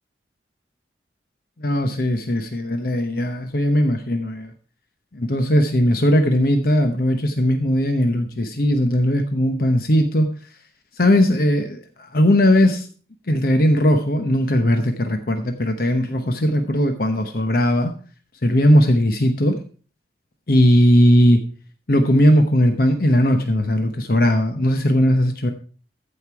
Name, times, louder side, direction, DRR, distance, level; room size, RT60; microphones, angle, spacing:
voice 1, 1.6-4.5 5.1-10.3 11.0-12.9 13.3-17.9 18.4-19.6 20.5-21.4 21.9-25.5, equal, 55° left, 6 dB, 0.9 m, -18 dB
14.0 x 5.3 x 4.7 m, 0.39 s
head